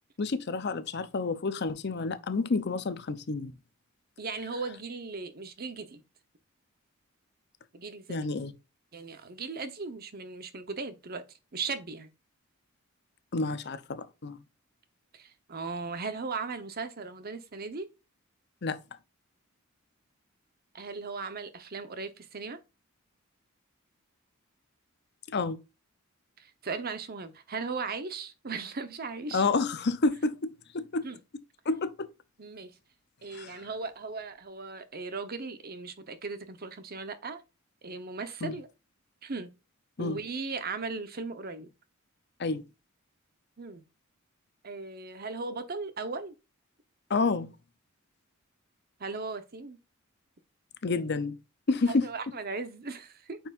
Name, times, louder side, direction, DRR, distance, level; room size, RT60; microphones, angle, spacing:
voice 1, 0.2-3.5 8.1-8.5 13.3-14.4 18.6-18.8 25.3-25.6 29.3-31.1 31.7-31.9 33.3-33.5 38.4-38.5 40.0-40.2 42.4-42.6 47.1-47.5 50.8-51.4 51.7-52.1, left 3 dB, 55° left, 0.7 m, -29 dB
voice 2, 4.2-6.0 7.7-8.3 8.9-11.2 11.5-12.1 15.1-17.9 20.7-22.6 26.4-29.5 31.0-31.2 32.4-32.8 33.2-37.4 37.8-38.7 39.2-39.5 40.0-41.7 43.6-43.8 44.6-46.3 49.0-49.8 51.9-53.4, right 4 dB, 50° right, 0.9 m, -37 dB
8.9 x 4.5 x 2.5 m
head